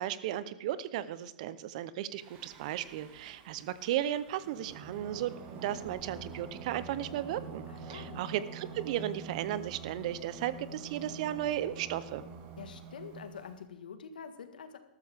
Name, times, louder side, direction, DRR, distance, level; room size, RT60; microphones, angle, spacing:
voice 1, 0.0-5.3 5.6-12.2, right 12 dB, 55° right, 16 dB, 0.7 m, -35 dB
Singing, 2.2-13.5, right 4 dB, 40° right, 1.9 m, -46 dB
voice 2, 7.7-8.3 12.6-14.8, left 6 dB, 85° left, 9 dB, 1.5 m, -46 dB
13.5 x 13.5 x 3.5 m, 0.97 s
hypercardioid pair, 130°, 5 cm